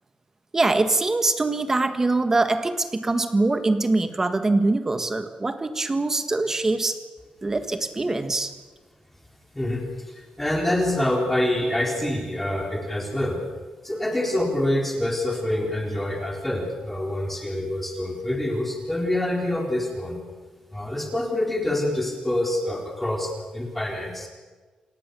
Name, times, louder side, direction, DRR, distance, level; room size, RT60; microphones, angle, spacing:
voice 1, 0.5-7.0 7.4-8.5, right 2 dB, 20° right, 9 dB, 1.6 m, -23 dB
voice 2, 9.5-13.4 13.8-20.2 20.7-24.3, left 1 dB, 5° left, 1 dB, 4.1 m, -26 dB
28.0 x 18.0 x 7.0 m, 1.4 s
wide cardioid pair, 165°, 2 cm